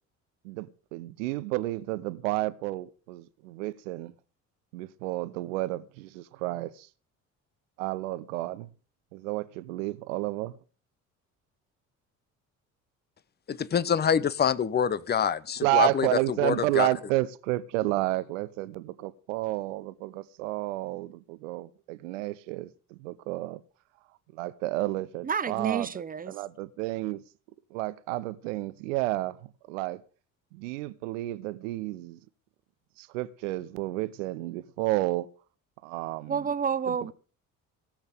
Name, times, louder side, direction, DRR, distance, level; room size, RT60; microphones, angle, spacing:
voice 1, 0.4-4.1 4.7-6.9 7.8-8.7 9.1-10.6 15.6-23.6 24.3-25.9 26.3-27.2 27.7-29.4 29.7-30.0 30.5-32.2 33.0-35.3 35.8-36.3 36.9-37.1, right 18 dB, 65° right, 0.8 m, -31 dB
voice 2, 13.5-16.9, left 7 dB, 25° left, 0.9 m, -26 dB
voice 3, 25.2-26.3 36.3-37.1, right 6 dB, 20° right, 0.7 m, -29 dB
17.5 x 7.4 x 6.9 m
figure-of-eight pair, 50°, 41 cm